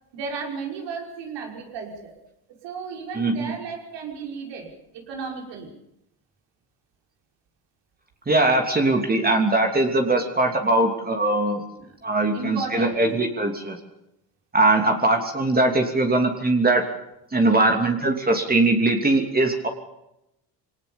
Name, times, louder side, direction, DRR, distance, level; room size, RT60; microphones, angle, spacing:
voice 1, 0.1-2.1 2.6-5.7 11.8-11.9 12.3-13.0 14.7-14.9, right 5 dB, 75° right, 1 dB, 5.7 m, -34 dB
voice 2, 3.1-3.5 8.3-11.6 12.0-13.8 14.5-16.9 17.3-19.7, right 2 dB, 20° right, 3 dB, 3.1 m, -21 dB
22.5 x 18.5 x 7.2 m, 0.85 s
cardioid pair, 90°, 43 cm